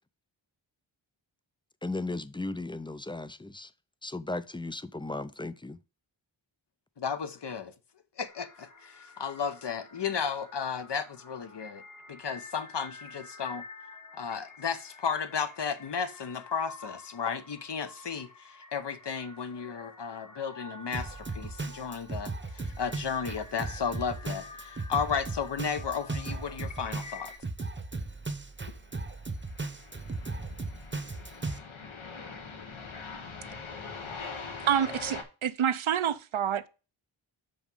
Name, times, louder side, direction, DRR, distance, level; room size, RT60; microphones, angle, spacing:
voice 1, 1.8-3.7 4.0-5.8, left 2 dB, 10° left, 0.4 m, -36 dB
voice 2, 7.0-7.7 8.2-11.8 12.1-13.6 14.1-27.3, left 6 dB, 60° left, 0.9 m, -34 dB
sound 1, 8.3-27.4, left 3 dB, 40° left, 1.3 m, -49 dB
Drum kit, 20.9-31.6, right 3 dB, 25° right, 0.9 m, -37 dB
sound 2, 28.6-35.2, left 4 dB, 75° left, 1.3 m, -43 dB
voice 3, 34.6-36.7, right 9 dB, 75° right, 0.7 m, -28 dB
6.0 x 5.2 x 5.3 m
wide cardioid pair, 85°, 48 cm